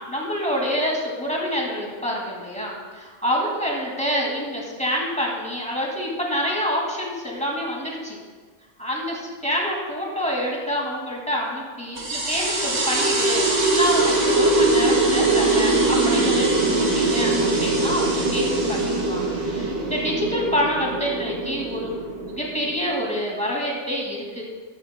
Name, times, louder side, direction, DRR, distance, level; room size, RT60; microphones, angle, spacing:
voice 1, 0.0-8.2 8.8-24.4, equal, 5° left, -2 dB, 2.1 m, -27 dB
sound 1, 12.0-23.0, right 2 dB, 60° right, 2.2 m, -22 dB
13.0 x 12.0 x 2.2 m, 1.5 s
omnidirectional pair, 1.3 m